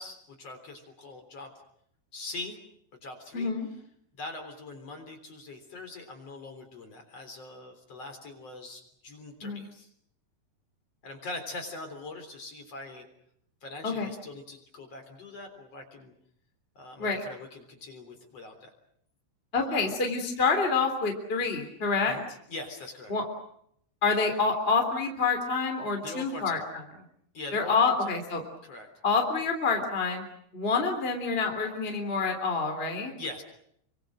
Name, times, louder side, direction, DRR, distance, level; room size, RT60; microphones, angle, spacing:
voice 1, 0.0-1.5 2.1-2.6 3.0-3.5 4.2-9.9 11.0-13.1 13.6-16.1 16.8-18.7 19.6-19.9 22.1-23.1 26.0-26.7 27.3-27.8 28.0-28.2 28.6-28.9 33.2-33.4, left 2 dB, 40° left, 5 dB, 4.4 m, -42 dB
voice 2, 3.3-3.7 9.4-9.6 13.8-14.1 17.0-17.2 19.5-22.2 23.1-23.2 24.0-26.6 27.5-28.4 29.0-30.2 30.5-33.1, left 4 dB, 15° left, 4 dB, 3.1 m, -27 dB
29.5 x 25.0 x 6.4 m, 0.71 s
omnidirectional pair, 4.7 m